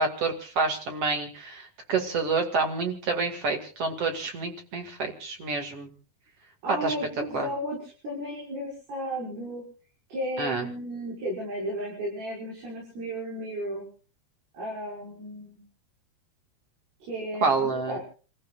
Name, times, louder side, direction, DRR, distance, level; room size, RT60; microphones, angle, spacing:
voice 1, 0.0-5.9 6.8-6.9 7.3-7.5 10.4-10.6 17.4-18.0, right 4 dB, 40° right, 4 dB, 2.9 m, -28 dB
voice 2, 6.6-9.6 10.1-13.9 14.5-15.6 17.0-18.0, equal, 80° right, -4 dB, 8.2 m, -34 dB
29.5 x 15.5 x 2.5 m, 0.40 s
omnidirectional pair, 4.6 m